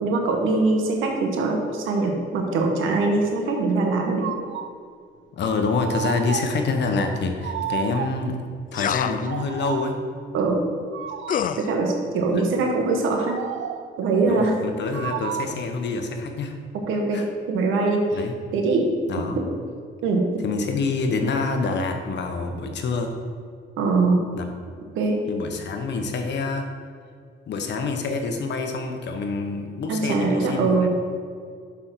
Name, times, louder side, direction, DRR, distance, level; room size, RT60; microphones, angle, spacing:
voice 1, 0.0-4.3 10.3-10.6 11.6-13.4 14.0-14.6 16.7-18.3 18.5-18.9 19.3-19.5 20.0-20.3 23.8-24.2 24.9-25.2 29.9-30.9, right 3 dB, 90° right, 2 dB, 1.4 m, -22 dB
sound 1, 4.0-4.8 5.8-6.7 7.4-8.3 9.2-10.1 10.9-11.6 13.3-14.0 14.9-15.7, right 10 dB, 70° right, 0.5 m, -32 dB
voice 2, 5.4-8.4 8.7-10.0 14.2-16.6 17.1-17.3 18.1-18.3 19.1-19.4 20.4-23.1 24.3-24.5 25.3-26.7 27.5-30.9, left 4 dB, 60° left, 5 dB, 1.1 m, -26 dB
sound 2, 8.7-9.3 11.3-11.7, left 8 dB, 45° left, 0.4 m, -26 dB
6.2 x 5.8 x 6.2 m, 2.1 s
cardioid pair, 90°, 20 cm